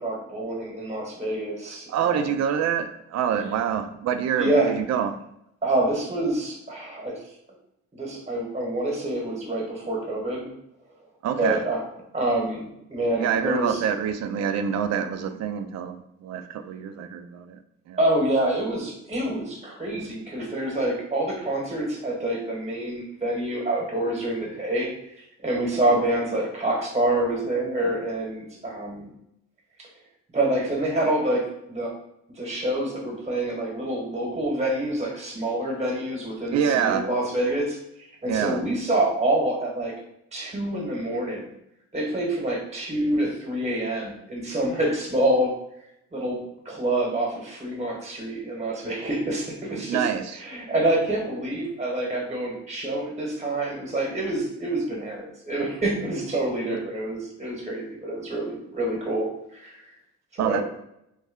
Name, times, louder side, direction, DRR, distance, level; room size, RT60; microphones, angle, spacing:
voice 1, 0.0-2.3 4.4-4.7 5.6-7.2 7.9-10.5 11.4-11.8 12.1-13.8 18.0-24.9 25.4-29.1 30.3-31.9 32.3-37.8 38.2-39.9 40.3-41.5 41.9-45.5 46.1-50.0 50.4-59.9 60.3-60.6, right 1 dB, 20° right, -2 dB, 1.1 m, -27 dB
voice 2, 1.9-5.1 11.2-11.6 13.2-17.6 17.9-18.0 36.5-37.1 38.3-38.6 49.8-50.2 60.4-60.6, right 8 dB, 60° right, 9 dB, 0.4 m, -26 dB
3.2 x 2.1 x 3.5 m, 0.80 s
cardioid pair, 90°, 30 cm